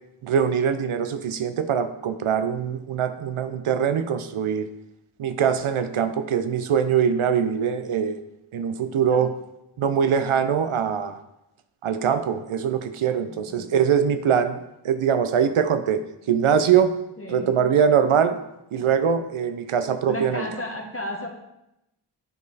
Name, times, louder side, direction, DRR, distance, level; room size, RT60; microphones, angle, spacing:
voice 1, 0.2-4.7 5.2-8.2 8.5-9.3 9.8-11.2 11.8-14.6 14.8-17.0 17.3-18.4 18.7-20.5, right 7 dB, 80° right, 10 dB, 0.6 m, -22 dB
voice 2, 13.3-13.7 17.2-17.6 20.1-21.3, left 1 dB, 30° left, 1 dB, 0.9 m, -33 dB
9.1 x 3.1 x 4.0 m, 0.87 s
cardioid pair, 45°, 49 cm